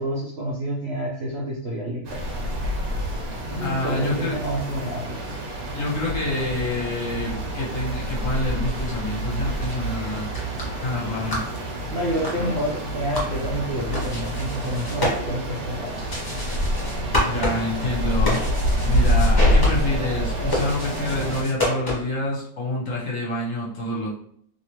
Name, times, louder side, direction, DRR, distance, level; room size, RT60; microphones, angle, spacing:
voice 1, 0.0-2.4 3.5-5.6 11.9-16.1, right 1 dB, 85° right, -3 dB, 0.5 m, -29 dB
sound 1, 2.0-21.4, equal, 65° right, 1.2 m, -26 dB
voice 2, 3.6-4.4 5.7-10.3 10.8-11.5 12.4-12.5 17.2-18.4 18.8-24.1, left 2 dB, 60° left, -4 dB, 0.9 m, -27 dB
sound 2, 10.3-22.3, left 1 dB, 25° left, 0.5 m, -30 dB
3.1 x 2.7 x 2.8 m, 0.65 s
omnidirectional pair, 1.9 m